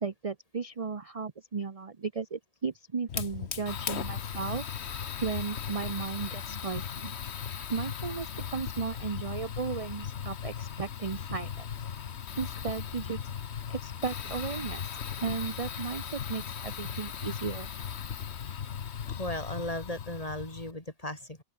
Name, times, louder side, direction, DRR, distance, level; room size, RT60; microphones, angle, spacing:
voice 1, 0.0-4.7 5.2-7.1 7.7-11.7 12.4-13.2 13.8-14.9 15.2-17.7, right 5 dB, 30° right, 0.8 m, -35 dB
Fire, 3.1-20.7, left 8 dB, 55° left, 1.2 m, -37 dB
voice 2, 19.2-21.4, left 1 dB, 25° left, 4.2 m, -36 dB
open air
omnidirectional pair, 1.4 m